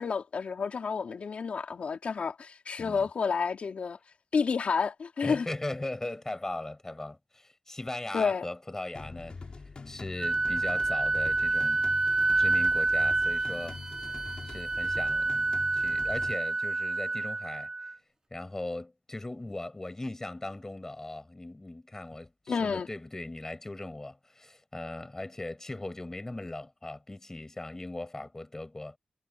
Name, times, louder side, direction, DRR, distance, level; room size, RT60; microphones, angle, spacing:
voice 1, 0.0-4.0 4.3-5.5 8.1-8.4 22.5-22.9, left 5 dB, 75° left, 3.2 m, -30 dB
voice 2, 2.8-3.1 5.2-9.4 9.9-11.9 12.4-13.8 14.0-14.2 14.4-15.4 15.7-17.7 18.3-29.0, left 2 dB, 20° left, 7.4 m, -39 dB
sound 1, 8.9-16.3, left 4 dB, 50° left, 6.9 m, -44 dB
Wind instrument woodwind instrument, 10.2-17.9, right 3 dB, 35° right, 2.9 m, -28 dB
wide cardioid pair, 115°, 2 cm